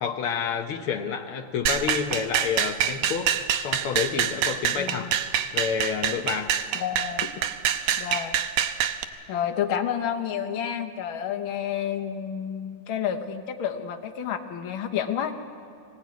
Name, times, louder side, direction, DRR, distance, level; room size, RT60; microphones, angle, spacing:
voice 1, 0.0-3.3 3.6-5.1 5.5-6.5, left 7 dB, 80° left, 3 dB, 1.2 m, -29 dB
sound 1, 1.7-9.0, right 10 dB, 75° right, 2.0 m, -26 dB
voice 2, 4.8-5.1 6.7-7.3 8.0-8.4 9.3-15.3, left 9 dB, 65° left, 5 dB, 1.3 m, -30 dB
24.5 x 17.5 x 9.3 m, 2.6 s
omnidirectional pair, 3.7 m